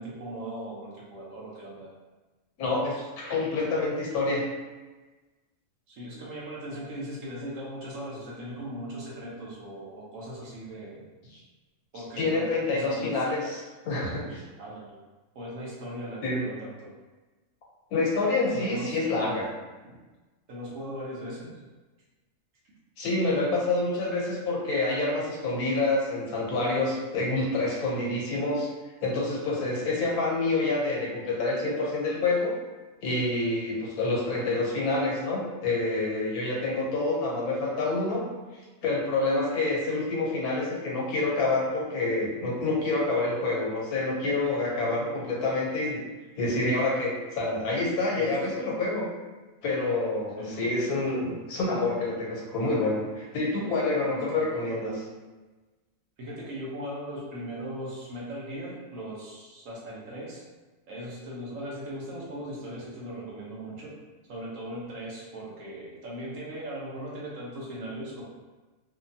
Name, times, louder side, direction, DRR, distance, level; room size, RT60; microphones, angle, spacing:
voice 1, 0.0-1.9 5.9-11.0 11.9-13.2 14.6-15.0 15.3-16.9 18.5-19.0 19.8-20.0 20.5-21.6 34.4-34.7 48.2-48.3 50.4-50.7 51.2-51.4 54.1-55.0 56.2-60.4 60.9-64.0 64.3-68.2, right 1 dB, 65° right, -5 dB, 1.1 m, -39 dB
voice 2, 2.6-4.5 12.2-14.4 16.2-16.4 17.9-19.5 23.0-28.7 29.0-32.5 33.0-38.3 38.8-46.0 46.4-49.1 49.6-54.9, left 2 dB, 85° left, -3 dB, 1.3 m, -27 dB
3.3 x 2.2 x 2.7 m, 1.2 s
omnidirectional pair, 1.5 m